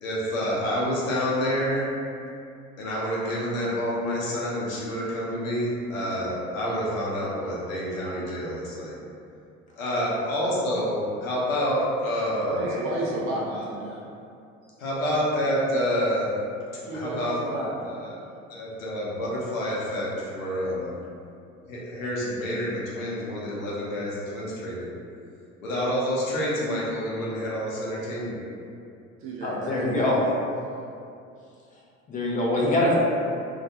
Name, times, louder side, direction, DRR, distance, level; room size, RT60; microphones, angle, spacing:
voice 1, 0.0-1.9 2.8-9.0 9.8-12.7 13.5-13.7 14.8-16.3 16.9-18.2 18.5-20.9 21.7-24.9 25.6-28.4, equal, 75° left, -6 dB, 0.7 m, -28 dB
voice 2, 12.5-14.0 14.7-14.8 16.7-18.0 29.2-30.1, right 1 dB, 35° right, -4 dB, 0.5 m, -32 dB
voice 3, 29.4-30.2 32.1-33.0, left 1 dB, 20° left, -4 dB, 0.5 m, -23 dB
2.4 x 2.2 x 2.6 m, 2.5 s
figure-of-eight pair, 65°, 40 cm